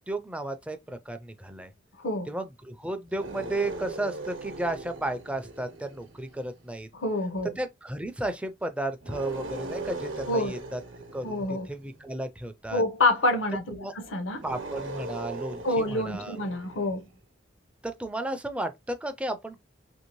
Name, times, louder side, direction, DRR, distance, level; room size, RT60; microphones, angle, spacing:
voice 1, 0.1-1.7 2.3-6.9 7.6-10.8 11.1-12.8 13.7-13.9 14.4-16.4 17.8-19.6, right 1 dB, 5° right, 0.3 m, -34 dB
Angry Beast, 3.1-6.6 9.0-12.1 14.3-17.1, right 3 dB, 75° right, 0.8 m, -39 dB
voice 2, 7.0-7.5 10.3-10.5 11.2-11.7 12.7-14.4 15.6-17.0, left 2 dB, 75° left, 0.7 m, -27 dB
2.9 x 2.6 x 2.9 m
head